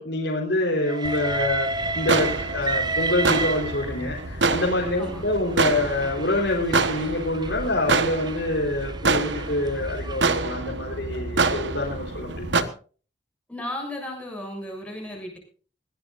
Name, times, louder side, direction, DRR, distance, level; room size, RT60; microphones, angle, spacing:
voice 1, 0.0-12.7, left 1 dB, 70° left, -3 dB, 4.1 m, -26 dB
Train, 0.8-4.2 5.1-10.3, right 3 dB, 25° right, 0.9 m, -32 dB
sound 1, 1.0-7.9, left 1 dB, 90° left, 4.7 m, -43 dB
sound 2, 1.8-12.6, right 3 dB, 85° right, 1.4 m, -27 dB
voice 2, 13.5-15.4, left 1 dB, 10° left, 0 dB, 7.3 m, -34 dB
20.5 x 17.0 x 2.6 m, 0.39 s
head